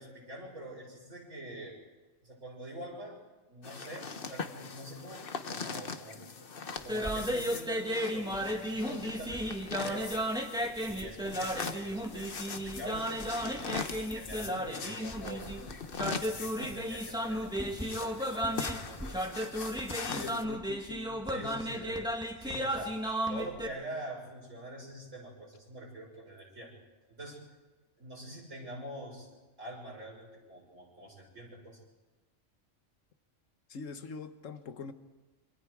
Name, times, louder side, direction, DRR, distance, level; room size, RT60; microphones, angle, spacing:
voice 1, 0.0-1.8 2.2-3.2 3.5-6.2 6.8-9.5 9.8-10.2 10.9-15.6 16.0-19.3 20.0-20.4 21.3-22.9 23.3-26.7 27.2-27.4 28.0-29.3 29.6-31.8, right 1 dB, 85° right, 6.9 m, -45 dB
sound 1, 3.6-20.4, left 5 dB, 50° left, 1.2 m, -42 dB
sound 2, 6.8-23.7, equal, 5° right, 1.7 m, -34 dB
voice 2, 20.1-21.6 33.7-34.9, left 5 dB, 85° left, 1.5 m, -43 dB
27.5 x 25.0 x 4.8 m
omnidirectional pair, 1.3 m